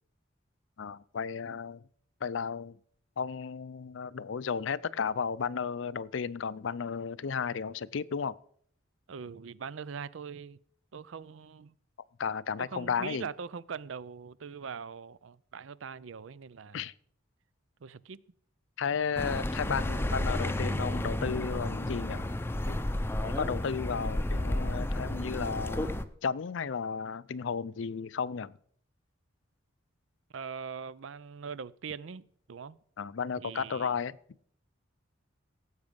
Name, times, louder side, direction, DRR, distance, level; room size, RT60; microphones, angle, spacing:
voice 1, 0.8-1.8 2.2-2.8 3.2-8.3 12.2-13.3 16.7-16.9 18.8-22.3 22.7-22.9 23.2-28.5 33.0-34.2, left 6 dB, 70° left, 0.5 m, -34 dB
voice 2, 9.1-10.6 10.9-11.7 12.6-16.8 17.8-18.2 30.3-32.8 33.4-33.9, right 6 dB, 75° right, 0.5 m, -42 dB
Accelerating revving vroom, 19.2-26.1, left 1 dB, 10° left, 0.6 m, -32 dB
17.0 x 8.1 x 5.2 m
head